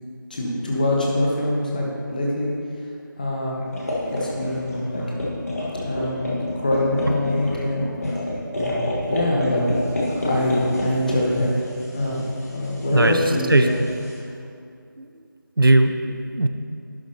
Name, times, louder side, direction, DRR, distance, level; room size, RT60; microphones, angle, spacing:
voice 1, 0.3-2.5 3.2-3.6 4.0-5.0 5.8-7.8 8.5-9.6 10.1-11.5 11.9-13.7, left 1 dB, 25° left, -3 dB, 1.0 m, -24 dB
sound 1, 3.7-14.2, left 1 dB, 45° left, 1.7 m, -29 dB
voice 2, 7.1-7.4 12.9-13.2 13.5-13.7 15.0-15.1 15.6-16.5, right 2 dB, 80° right, 7 dB, 0.6 m, -19 dB
11.0 x 7.2 x 3.0 m, 2.5 s
figure-of-eight pair, 170°, 11 cm